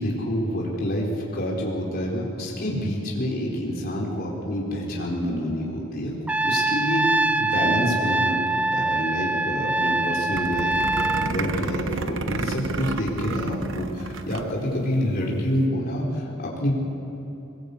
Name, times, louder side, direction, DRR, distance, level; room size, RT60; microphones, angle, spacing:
voice 1, 0.0-6.1 6.4-16.7, equal, 50° left, -3 dB, 4.1 m, -27 dB
Trumpet, 6.3-11.3, right 2 dB, 5° right, 0.5 m, -24 dB
sound 1, 10.3-14.5 14.8-14.9 15.1-15.4, right 3 dB, 65° right, 1.1 m, -31 dB
22.0 x 21.0 x 8.4 m, 3.0 s
head